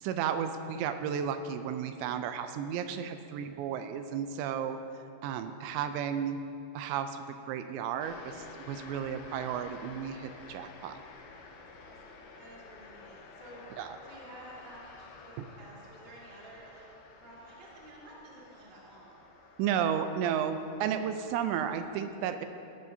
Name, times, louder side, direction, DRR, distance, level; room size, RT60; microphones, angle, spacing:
voice 1, 0.0-4.8 5.2-6.4 6.7-11.0 13.8-14.0 19.6-22.5, right 8 dB, 85° right, 9 dB, 2.7 m, -33 dB
sound 1, 8.0-21.9, left 3 dB, 90° left, 3.4 m, -51 dB
voice 2, 11.5-16.9 17.2-19.6 19.9-20.0, right 1 dB, 35° right, -6 dB, 0.9 m, -52 dB
16.0 x 12.0 x 2.7 m, 2.8 s
omnidirectional pair, 5.2 m